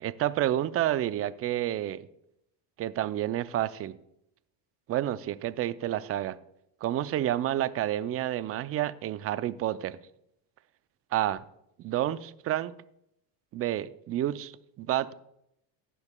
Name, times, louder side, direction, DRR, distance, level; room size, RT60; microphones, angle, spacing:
voice 1, 0.0-2.1 2.8-3.9 4.9-6.4 6.8-10.0 11.1-11.4 11.8-12.7 13.5-15.1, right 13 dB, 30° right, 15 dB, 0.5 m, -29 dB
19.5 x 7.0 x 2.3 m, 0.78 s
supercardioid pair, 105°, 48 cm